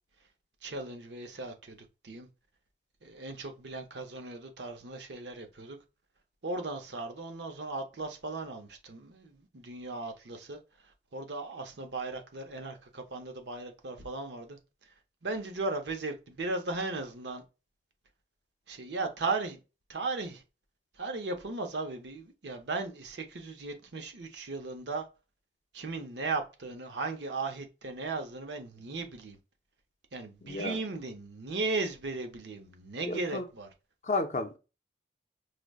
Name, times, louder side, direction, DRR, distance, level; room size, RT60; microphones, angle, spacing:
voice 1, 0.6-2.3 3.0-5.8 6.4-10.6 11.1-14.6 15.2-17.4 18.7-19.6 19.9-20.4 21.0-25.0 25.7-29.4 30.1-33.7, right 3 dB, 75° right, 0.7 m, -36 dB
voice 2, 30.4-30.8 33.0-33.4 34.0-34.6, left 2 dB, 40° left, 0.5 m, -32 dB
4.9 x 2.1 x 2.3 m
head